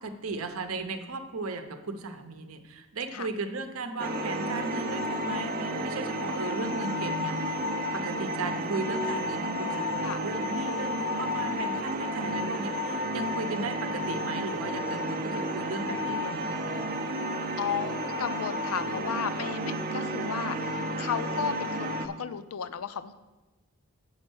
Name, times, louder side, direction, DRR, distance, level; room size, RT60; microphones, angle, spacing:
voice 1, 0.0-7.7 7.9-17.0, right 3 dB, 75° right, 8 dB, 0.7 m, -36 dB
sound 1, 4.0-22.1, equal, 40° right, 0.5 m, -31 dB
voice 2, 11.2-11.6 17.6-23.1, left 7 dB, 80° left, 12 dB, 0.4 m, -34 dB
7.2 x 5.4 x 6.2 m, 1.1 s
head